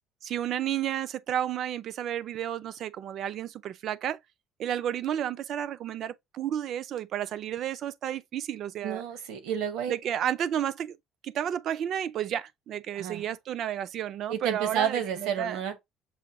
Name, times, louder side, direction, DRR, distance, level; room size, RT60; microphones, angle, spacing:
voice 1, 0.2-4.2 4.6-9.0 9.9-11.0 11.2-15.6, right 10 dB, 50° right, 0.4 m, -32 dB
voice 2, 8.8-9.9 12.9-13.2 14.3-15.8, right 8 dB, 80° right, 1.0 m, -30 dB
6.2 x 2.2 x 2.8 m
cardioid pair, 120°, 0 cm